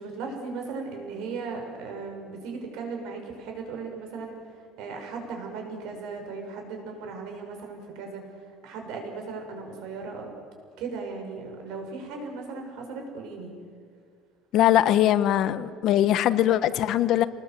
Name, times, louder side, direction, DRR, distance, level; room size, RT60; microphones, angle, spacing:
voice 1, 0.0-4.4 4.8-8.3 8.6-10.3 10.8-13.5, right 4 dB, 65° right, 5.9 m, -37 dB
voice 2, 14.5-17.3, left 12 dB, 50° left, 0.9 m, -21 dB
27.5 x 20.5 x 7.6 m
cardioid pair, 170°, 0 cm